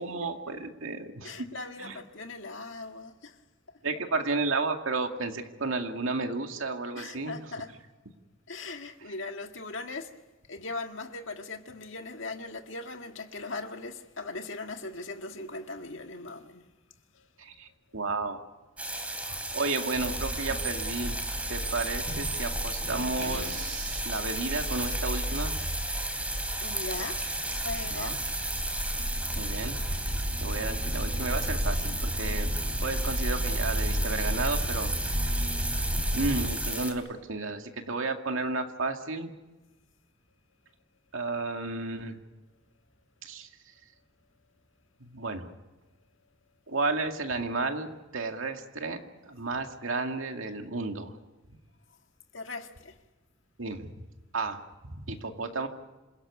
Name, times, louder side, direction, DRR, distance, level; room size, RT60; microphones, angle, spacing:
voice 1, 0.0-1.4 1.8-2.0 3.8-7.4 17.4-18.4 19.3-21.2 21.5-25.5 27.9-28.2 29.4-29.7 30.4-32.5 32.8-34.9 36.1-39.3 41.1-42.2 43.2-43.5 45.0-45.5 46.7-47.9 48.1-51.2 53.6-53.9 54.3-55.7, right 3 dB, 80° right, 2.3 m, -32 dB
voice 2, 1.2-3.4 3.7-3.8 7.0-7.7 8.5-10.2 10.5-16.7 17.1-17.3 26.6-28.2 52.3-53.0, left 3 dB, 65° left, 1.9 m, -39 dB
sound 1, 18.8-36.9, right 2 dB, 5° right, 3.2 m, -34 dB
sound 2, 20.0-36.6, equal, 35° right, 5.1 m, -33 dB
27.0 x 17.0 x 9.8 m
head